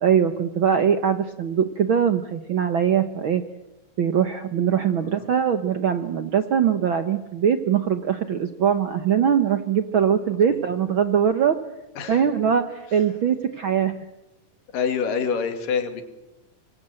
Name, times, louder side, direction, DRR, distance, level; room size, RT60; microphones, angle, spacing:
voice 1, 0.0-3.4 4.0-11.6 12.1-13.9, right 8 dB, 65° right, 9 dB, 1.2 m, -22 dB
voice 2, 4.8-5.1 10.5-10.6 12.0-12.2 14.7-16.0, left 6 dB, 90° left, 8 dB, 3.8 m, -26 dB
26.0 x 23.0 x 7.8 m, 0.98 s
omnidirectional pair, 3.7 m